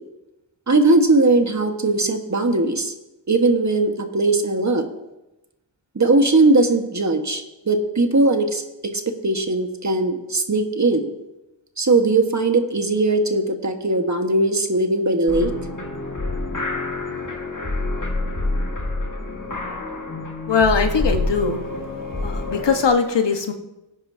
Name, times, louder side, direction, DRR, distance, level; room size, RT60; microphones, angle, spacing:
voice 1, 0.7-2.9 3.3-4.9 5.9-11.1 11.8-15.5, right 2 dB, 40° right, 5 dB, 1.4 m, -19 dB
sound 1, 15.3-22.9, left 2 dB, 40° left, 1.8 m, -27 dB
voice 2, 20.5-21.6 22.2-23.5, left 5 dB, 65° left, 6 dB, 1.3 m, -20 dB
17.5 x 9.8 x 2.7 m, 0.96 s
cardioid pair, 50°, 46 cm